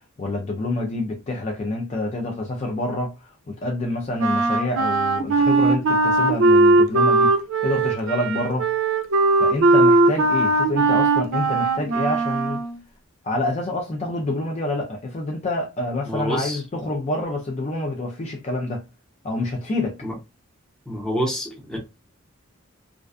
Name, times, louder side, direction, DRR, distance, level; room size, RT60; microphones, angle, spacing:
voice 1, 0.2-3.1 3.5-8.7 9.4-12.6 13.2-18.8 19.2-20.0, left 2 dB, 30° left, 0.4 m, -27 dB
Wind instrument woodwind instrument, 4.2-12.8, right 2 dB, 75° right, 0.4 m, -19 dB
voice 2, 16.1-16.6 20.0-20.1 20.9-21.8, equal, 5° left, 0.8 m, -27 dB
2.4 x 2.2 x 2.4 m
head